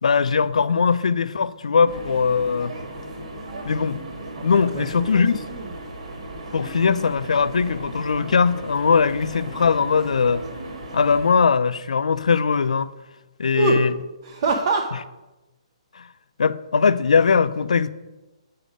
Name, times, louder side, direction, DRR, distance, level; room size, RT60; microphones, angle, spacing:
voice 1, 0.0-2.7 3.7-4.0 4.4-5.4 6.5-10.4 10.9-12.9 13.4-13.9 15.9-16.1 16.4-17.9, left 5 dB, 90° left, 0.4 m, -20 dB
sound 1, 1.9-11.3, right 1 dB, 75° right, 1.8 m, -36 dB
voice 2, 4.3-5.7 13.5-13.8 14.2-14.9, right 5 dB, 40° right, 0.6 m, -26 dB
6.6 x 5.0 x 5.0 m
hypercardioid pair, 160°, 4 cm